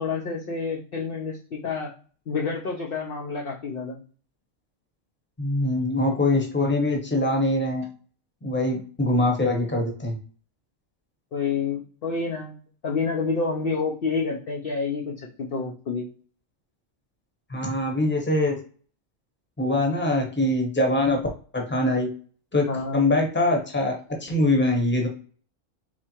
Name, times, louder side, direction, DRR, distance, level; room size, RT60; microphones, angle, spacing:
voice 1, 0.0-1.9 2.3-4.0 6.3-6.5 11.3-12.6 12.8-16.1 22.7-23.1, left 4 dB, 55° left, -1 dB, 0.7 m, -28 dB
voice 2, 5.4-7.9 8.4-10.1 17.5-18.6 19.6-21.2 21.5-22.1 22.5-22.6 22.9-25.1, left 2 dB, 10° left, 1 dB, 0.9 m, -23 dB
4.4 x 3.3 x 2.9 m, 0.42 s
omnidirectional pair, 1.4 m